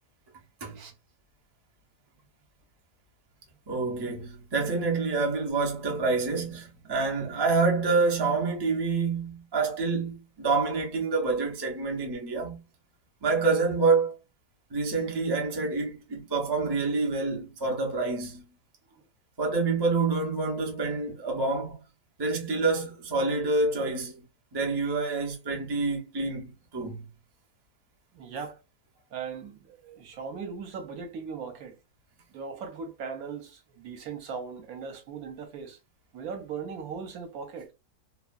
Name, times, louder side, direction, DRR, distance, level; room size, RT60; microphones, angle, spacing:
voice 1, 3.7-12.6 13.2-14.1 14.7-18.5 19.4-21.8 22.2-24.2 24.5-27.0, right 3 dB, 40° right, 0.3 m, -27 dB
voice 2, 28.1-28.6 29.1-31.8 32.3-35.8 36.1-37.7, right 6 dB, 65° right, 1.1 m, -39 dB
2.7 x 2.2 x 2.4 m
omnidirectional pair, 1.7 m